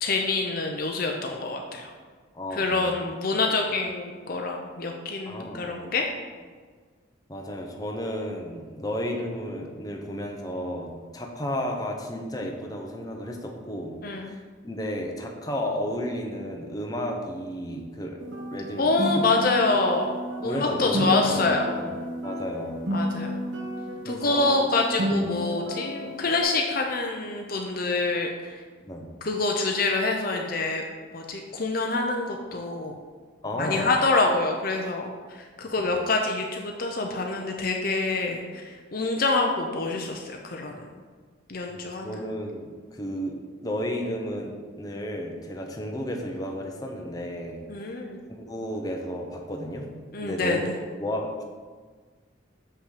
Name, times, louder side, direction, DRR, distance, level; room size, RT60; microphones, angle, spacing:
voice 1, 0.0-1.9 2.5-6.1 14.0-14.4 18.8-20.1 20.4-21.7 22.9-23.3 24.0-28.6 29.2-30.8 31.1-33.0 33.6-40.9 41.5-42.2 47.7-48.2 50.1-50.7, left 3 dB, 45° left, 2 dB, 0.7 m, -26 dB
voice 2, 2.3-3.0 5.2-5.7 7.3-13.9 14.3-18.2 18.5-19.2 20.4-21.9 22.2-22.8 24.0-24.7 25.1-25.3 28.8-29.1 33.4-34.0 35.8-35.9 41.7-47.8 48.3-49.9 50.2-51.4, equal, 20° left, 1 dB, 0.9 m, -33 dB
sound 1, 18.2-26.4, equal, 70° right, 1.3 m, -31 dB
7.0 x 5.8 x 5.0 m, 1.5 s
head